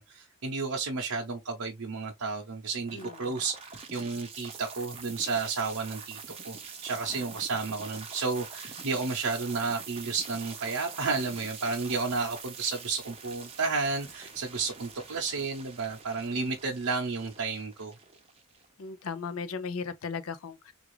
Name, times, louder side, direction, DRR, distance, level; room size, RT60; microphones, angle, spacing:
voice 1, 0.0-6.2 6.4-17.9, right 4 dB, 75° right, 0.7 m, -32 dB
voice 2, 2.9-3.4 18.8-20.7, left 5 dB, 65° left, 0.5 m, -36 dB
sound 1, 2.9-18.9, right 5 dB, 25° right, 0.7 m, -45 dB
3.5 x 2.4 x 3.2 m
head